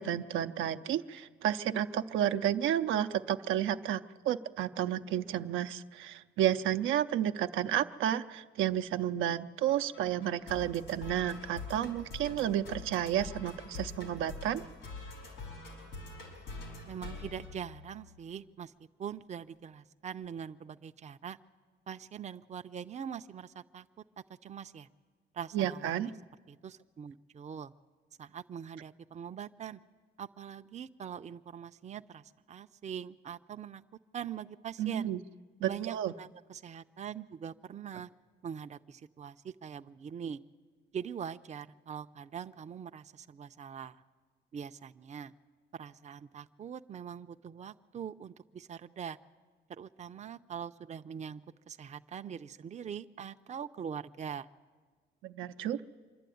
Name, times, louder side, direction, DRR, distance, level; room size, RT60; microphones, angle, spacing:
voice 1, 0.0-14.6 25.5-26.1 34.8-35.2 35.6-36.1 55.2-55.8, right 11 dB, 85° right, 8 dB, 0.7 m, -31 dB
sound 1, 9.7-18.3, left 3 dB, 85° left, 5.0 m, -45 dB
voice 2, 16.9-18.7 19.0-21.4 21.9-23.9 24.4-24.9 25.3-26.1 26.5-27.7 28.2-29.8 30.2-33.8 34.1-35.1 35.6-38.1 38.4-40.4 40.9-44.0 44.5-45.3 45.7-49.2 49.7-54.5, right 8 dB, 35° right, 9 dB, 0.5 m, -43 dB
25.5 x 11.5 x 9.3 m, 1.5 s
cardioid pair, 90°, 20 cm